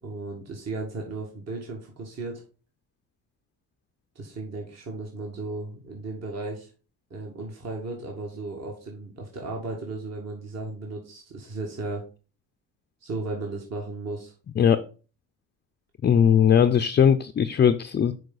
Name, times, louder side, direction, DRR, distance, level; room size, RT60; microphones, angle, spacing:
voice 1, 0.0-2.4 4.2-6.7 7.1-12.0 13.0-14.3, right 3 dB, 45° right, 1.9 m, -35 dB
voice 2, 16.0-18.1, left 8 dB, 30° left, 0.4 m, -19 dB
6.6 x 4.5 x 3.9 m
cardioid pair, 80°, 35 cm